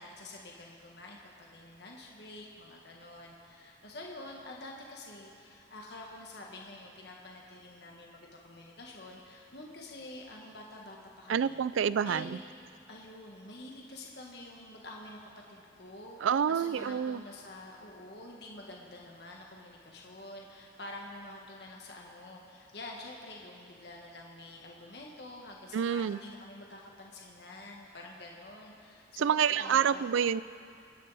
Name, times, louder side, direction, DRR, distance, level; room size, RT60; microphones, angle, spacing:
voice 1, 0.0-11.6 12.0-12.4 12.9-30.1, left 1 dB, 60° left, -2 dB, 1.5 m, -47 dB
voice 2, 11.3-12.4 16.2-17.2 25.7-26.2 29.2-30.4, right 7 dB, 85° right, 17 dB, 0.4 m, -28 dB
26.0 x 10.0 x 4.1 m, 2.4 s
head